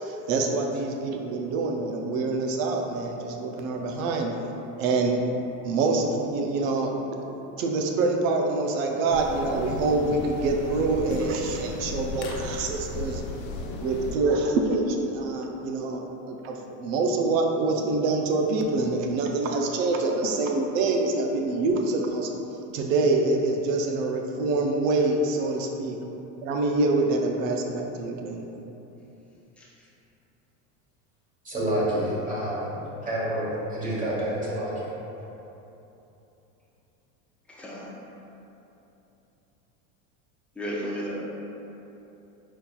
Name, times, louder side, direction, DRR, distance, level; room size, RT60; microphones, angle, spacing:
voice 1, 0.0-4.4 4.8-5.2 5.6-13.2 13.8-16.0 16.3-22.3 22.7-26.0 26.4-28.5, right 3 dB, 80° right, 2 dB, 0.6 m, -26 dB
sound 1, 9.1-14.2, left 2 dB, 65° left, 0.6 m, -35 dB
voice 2, 31.4-34.9, right 1 dB, 20° right, -7 dB, 1.1 m, -28 dB
voice 3, 37.5-37.9 40.6-41.3, equal, 5° left, -5 dB, 0.3 m, -33 dB
4.3 x 4.1 x 2.3 m, 3.0 s
supercardioid pair, 135°, 38 cm